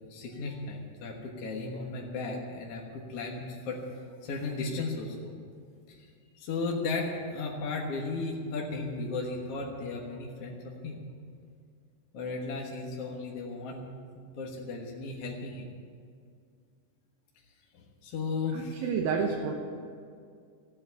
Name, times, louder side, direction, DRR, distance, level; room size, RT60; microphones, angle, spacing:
voice 1, 0.1-3.8 4.2-5.3 5.9-6.1 6.3-11.1 12.1-13.8 14.2-15.7 18.0-18.8, left 3 dB, 55° left, -1 dB, 2.1 m, -35 dB
voice 2, 18.5-19.5, right 5 dB, 90° right, 0 dB, 3.0 m, -29 dB
15.5 x 8.6 x 9.6 m, 2.2 s
omnidirectional pair, 4.1 m